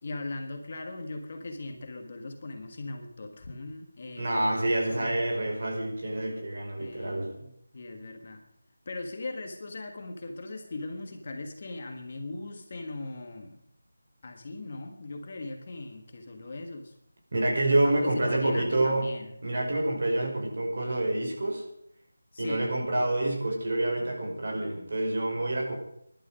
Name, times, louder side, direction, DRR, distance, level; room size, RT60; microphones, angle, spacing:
voice 1, 0.0-5.2 6.8-8.4 8.8-13.6 14.2-16.9 17.8-19.3 22.3-22.7, left 2 dB, 30° left, 4 dB, 1.6 m, -39 dB
voice 2, 4.2-7.3 17.3-19.1 19.4-21.7 22.4-25.7, right 1 dB, 40° right, 0 dB, 5.4 m, -27 dB
22.5 x 11.5 x 5.1 m, 0.72 s
figure-of-eight pair, 180°, 0 cm